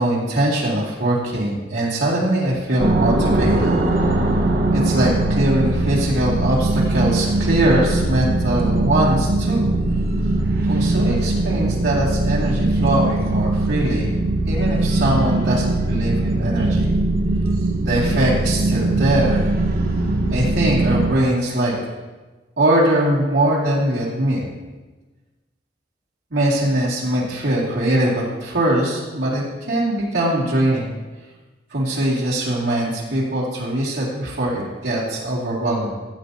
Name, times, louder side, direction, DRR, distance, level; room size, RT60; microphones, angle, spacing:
voice 1, 0.0-3.8 4.7-9.7 10.6-14.1 14.5-16.9 17.8-19.5 20.3-21.7 22.6-24.5 26.3-30.9 31.7-35.9, right 1 dB, 90° right, -7 dB, 2.3 m, -21 dB
sound 1, 2.8-21.1, right 2 dB, 55° right, 1.2 m, -20 dB
15.0 x 7.9 x 2.8 m, 1.2 s
head